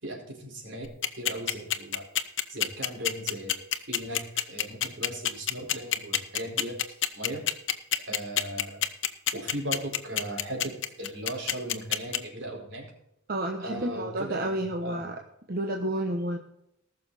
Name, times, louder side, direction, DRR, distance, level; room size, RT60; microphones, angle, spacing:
voice 1, 0.0-2.1 2.5-3.6 3.9-7.4 8.0-8.8 9.3-12.9 13.6-15.0, right 1 dB, 70° right, -1 dB, 4.5 m, -38 dB
sound 1, 0.8-12.2, left 11 dB, 70° left, 0.9 m, -26 dB
voice 2, 13.3-15.2 15.5-16.4, right 1 dB, 50° right, 2 dB, 1.1 m, -30 dB
19.0 x 6.5 x 4.1 m, 0.80 s
head